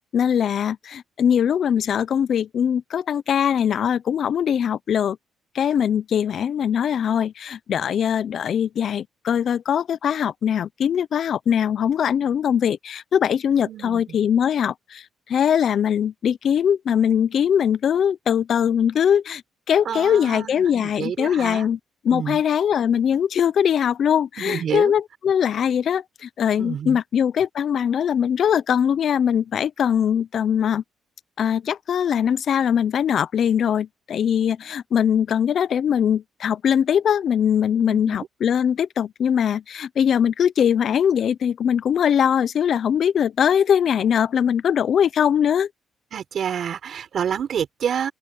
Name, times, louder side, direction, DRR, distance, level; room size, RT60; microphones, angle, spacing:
voice 1, 0.1-5.2 5.5-19.4 19.7-21.8 22.0-30.8 31.4-45.7, left 8 dB, 60° left, 0.7 m, -21 dB
voice 2, 13.6-14.2 19.8-21.7 22.1-22.4 24.4-24.9 26.6-27.0 37.8-38.2 46.1-48.1, right 8 dB, 60° right, 4.4 m, -28 dB
open air
cardioid pair, 90°, 0 cm